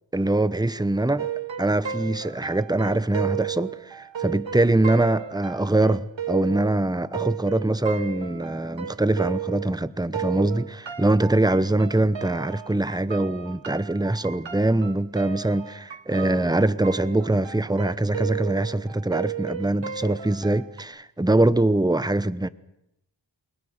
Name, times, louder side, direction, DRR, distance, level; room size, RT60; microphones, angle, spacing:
voice 1, 0.1-1.3 1.6-22.5, right 2 dB, 10° right, 0.9 m, -23 dB
sound 1, 1.2-9.8 10.1-20.8, right 9 dB, 75° right, 0.9 m, -34 dB
28.0 x 21.5 x 6.6 m
wide cardioid pair, 40°, 45 cm